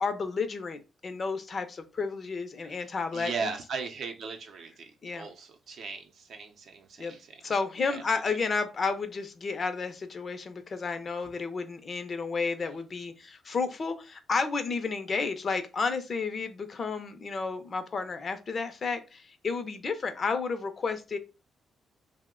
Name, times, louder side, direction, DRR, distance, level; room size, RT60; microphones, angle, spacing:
voice 1, 0.0-3.5 5.0-5.3 7.0-7.1 7.4-21.2, left 4 dB, 40° left, 0.5 m, -32 dB
voice 2, 2.6-7.4 7.9-8.0, right 5 dB, 65° right, 0.6 m, -38 dB
2.8 x 2.1 x 3.6 m
cardioid pair, 115°, 0 cm